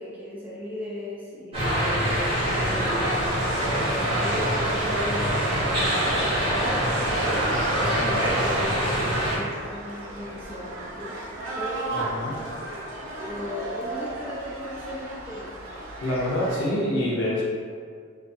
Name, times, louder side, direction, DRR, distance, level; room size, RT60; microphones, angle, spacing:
voice 1, 0.0-6.8 7.7-11.2 11.5-12.1 13.2-15.5, left 1 dB, 10° right, -8 dB, 0.4 m, -37 dB
sound 1, 1.5-9.4, equal, 25° right, 0.8 m, -24 dB
sound 2, 5.3-16.6, right 2 dB, 85° right, 0.6 m, -36 dB
voice 2, 7.8-8.2 11.9-12.3 16.0-17.4, left 1 dB, 65° left, -5 dB, 0.6 m, -27 dB
2.5 x 2.4 x 2.5 m, 2.1 s
head